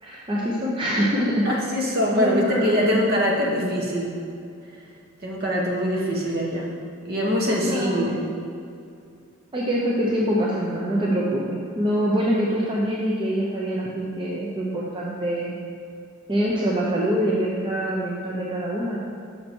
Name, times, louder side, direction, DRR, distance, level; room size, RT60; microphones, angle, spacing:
voice 1, 0.0-1.5 2.1-2.9 3.5-3.6 7.6-8.2 9.5-15.6 16.3-19.0, equal, 25° right, -5 dB, 0.8 m, -24 dB
voice 2, 1.4-4.1 5.2-6.7 7.0-8.2, equal, 50° right, -3 dB, 1.4 m, -23 dB
6.5 x 5.9 x 4.4 m, 2.5 s
head